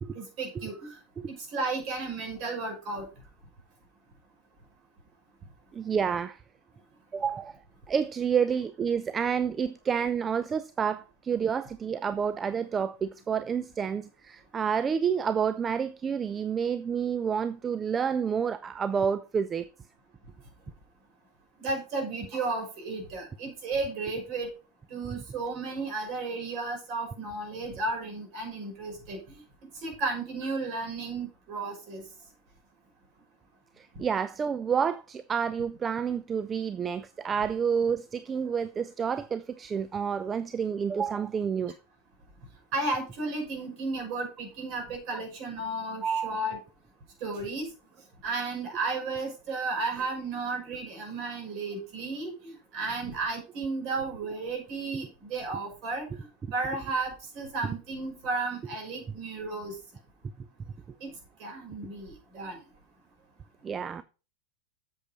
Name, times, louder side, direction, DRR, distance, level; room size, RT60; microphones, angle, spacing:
voice 1, 0.1-1.0 1.3-3.1 21.6-24.5 24.9-29.2 29.8-32.0 42.7-46.6 47.2-47.7 48.2-56.1 56.5-59.7 61.0-61.1 61.4-62.6, right 3 dB, 40° right, 5.8 m, -33 dB
voice 2, 5.7-6.4 7.1-7.6 7.9-19.7 33.8-41.7 46.0-46.4 63.6-64.0, right 7 dB, 20° right, 0.5 m, -29 dB
8.0 x 7.2 x 5.3 m
figure-of-eight pair, 90°, 0 cm